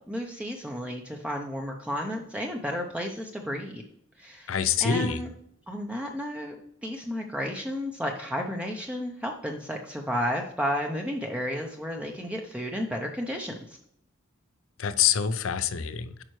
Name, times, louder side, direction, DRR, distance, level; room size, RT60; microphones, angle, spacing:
voice 1, 0.1-3.8 4.2-4.5 4.8-5.3 5.7-6.5 6.8-13.8, equal, 5° right, 1 dB, 0.6 m, -32 dB
voice 2, 4.5-5.2 14.8-16.2, left 8 dB, 75° left, 12 dB, 0.6 m, -26 dB
8.8 x 5.5 x 3.1 m, 0.71 s
head